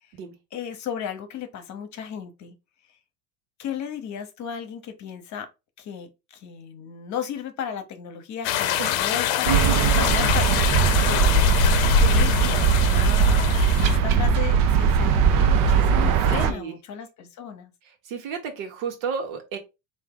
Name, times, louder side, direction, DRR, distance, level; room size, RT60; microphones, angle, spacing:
voice 1, 0.5-2.6 3.6-5.5 5.8-11.5 11.9-13.5 13.9-17.7, left 8 dB, 45° left, 0.9 m, -35 dB
sound 1, 8.4-14.0, left 9 dB, 70° left, 0.7 m, -24 dB
voice 2, 8.8-9.2 16.4-16.8 18.0-19.6, right 6 dB, 75° right, 1.3 m, -32 dB
sound 2, 9.5-16.5, right 6 dB, 55° right, 0.7 m, -20 dB
3.4 x 2.7 x 3.7 m
supercardioid pair, 105°, 41 cm